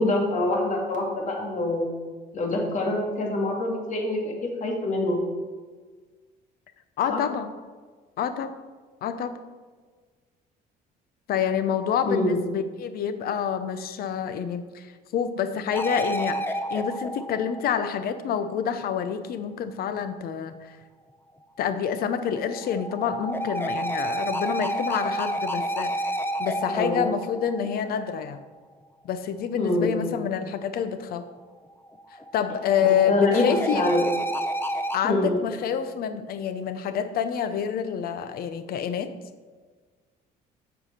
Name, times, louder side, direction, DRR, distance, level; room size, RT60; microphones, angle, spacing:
voice 1, 0.0-1.9 2.3-5.2 7.1-7.2 12.0-12.4 26.7-27.0 29.6-30.2 33.1-34.1 35.0-35.5, left 2 dB, 45° left, 0 dB, 2.0 m, -25 dB
voice 2, 7.0-7.5 8.2-8.5 9.0-9.3 11.3-20.8 21.6-25.9 26.4-28.4 29.0-31.2 32.3-33.8 34.9-39.1, left 8 dB, 65° left, 11 dB, 0.7 m, -27 dB
sound 1, 15.7-18.3 21.8-28.3 31.8-35.0, right 1 dB, 15° left, 0.6 m, -30 dB
8.2 x 4.8 x 5.6 m, 1.4 s
cardioid pair, 110°, 17 cm